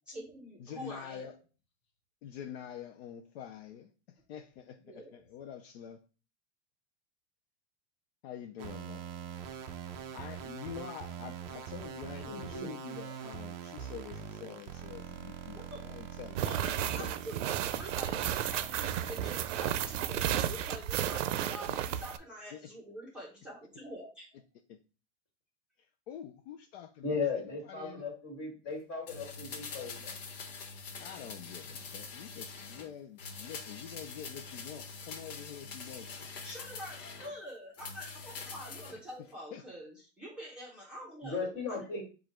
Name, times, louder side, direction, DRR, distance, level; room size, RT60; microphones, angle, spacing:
voice 1, 0.1-1.3 4.8-5.2 15.6-15.8 16.4-24.3 36.2-42.0, equal, 5° right, 1.0 m, -46 dB
voice 2, 0.6-1.3 2.2-6.0 8.2-9.1 9.6-9.7 10.1-16.4 16.8-17.1 21.7-21.8 22.5-22.7 26.1-28.0 31.0-36.3 39.5-39.6, left 9 dB, 60° left, 0.5 m, -46 dB
sound 1, 8.6-20.1, right 8 dB, 30° right, 0.4 m, -44 dB
voice 3, 12.2-12.7 27.0-30.2 41.2-42.0, left 4 dB, 30° left, 2.0 m, -36 dB
sound 2, 16.4-22.2, right 11 dB, 85° right, 0.5 m, -33 dB
sound 3, 29.1-32.9 33.2-37.3 37.7-39.0 39.3-39.4, left 5 dB, 90° left, 1.1 m, -44 dB
4.9 x 2.5 x 4.3 m
supercardioid pair, 160°, 36 cm